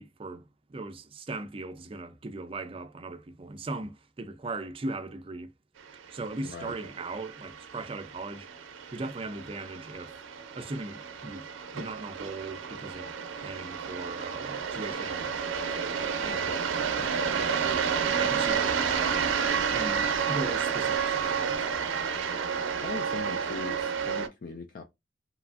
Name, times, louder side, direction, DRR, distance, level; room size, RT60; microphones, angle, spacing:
voice 1, 0.0-5.5 6.1-8.5 8.9-10.2 10.5-11.5 11.7-13.1 13.4-15.3 15.9-19.3 19.7-21.7, right 2 dB, 30° right, 0.4 m, -39 dB
sound 1, 6.0-24.3, right 6 dB, 90° right, 0.5 m, -31 dB
voice 2, 6.4-6.8 22.8-24.8, left 4 dB, 45° left, 0.3 m, -40 dB
3.0 x 2.4 x 2.4 m
head